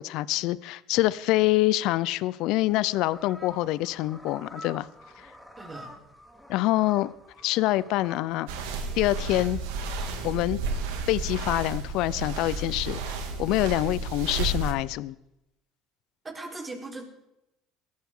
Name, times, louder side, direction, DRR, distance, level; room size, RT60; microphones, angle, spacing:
voice 1, 0.0-4.9 5.2-5.3 6.5-7.1 7.4-8.5 9.0-9.6 10.2-10.6 11.1-15.1, left 17 dB, 70° left, 0.6 m, -26 dB
sound 1, 2.5-9.4, equal, 5° right, 3.1 m, -48 dB
voice 2, 5.6-5.9 16.2-17.0, right 2 dB, 25° right, 4.3 m, -39 dB
sound 2, 8.5-14.7, right 3 dB, 85° right, 2.3 m, -32 dB
20.0 x 14.0 x 3.8 m
supercardioid pair, 85°, 0 cm